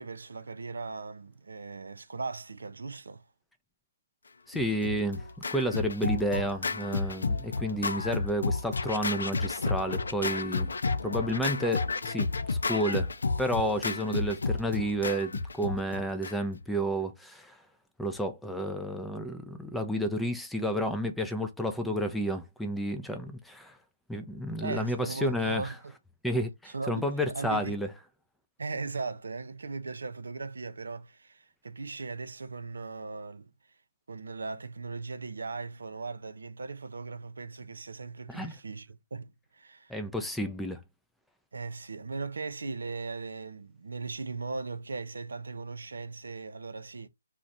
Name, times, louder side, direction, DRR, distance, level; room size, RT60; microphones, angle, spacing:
voice 1, 0.0-3.3 24.6-25.9 26.7-27.8 28.6-33.5 34.1-39.9 41.5-47.1, right 4 dB, 80° right, 0.4 m, -38 dB
Scratching (performance technique), 4.5-16.6, left 4 dB, 80° left, 0.4 m, -31 dB
voice 2, 4.5-5.2 5.5-13.1 13.4-17.6 18.0-23.8 24.1-25.7 26.2-27.9 38.3-38.6 39.9-40.8, equal, ahead, 0.4 m, -31 dB
2.4 x 2.1 x 3.9 m
hypercardioid pair, 145°, 0 cm